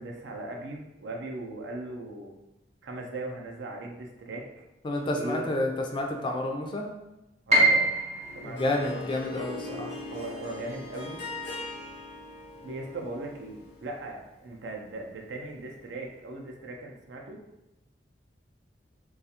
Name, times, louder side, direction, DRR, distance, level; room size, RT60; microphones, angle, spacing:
voice 1, 0.0-2.3 2.8-4.6 5.2-5.5 7.5-7.9 8.4-8.6 8.9-9.0 9.6-9.8 10.1-11.3 12.6-17.4, right 2 dB, 80° right, 1 dB, 0.5 m, -38 dB
voice 2, 4.8-6.9 8.4-9.9, left 1 dB, 30° left, 2 dB, 0.3 m, -30 dB
Piano, 7.5-13.4 13.8-14.9 15.3-15.4 16.1-16.5, right 1 dB, 40° right, 0.6 m, -29 dB
Harp, 8.2-14.0, left 3 dB, 70° left, 0.6 m, -40 dB
2.3 x 2.3 x 2.8 m, 0.92 s
head